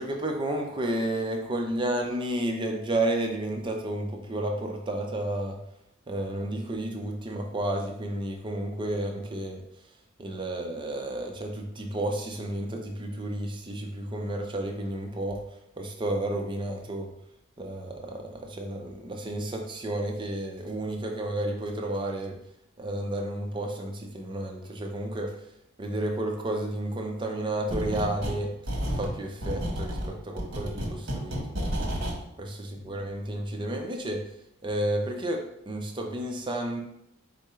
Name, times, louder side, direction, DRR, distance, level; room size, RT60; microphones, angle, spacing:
voice 1, 0.0-5.6 6.1-9.6 10.2-15.4 15.8-17.1 17.6-22.4 22.8-25.3 25.8-28.5 28.9-31.9 32.4-34.2 34.6-36.8, right 1 dB, 25° right, 2 dB, 0.5 m, -31 dB
sound 1, 27.7-28.4 28.7-32.2, equal, 55° right, 1.1 m, -31 dB
4.5 x 2.5 x 4.2 m, 0.78 s
head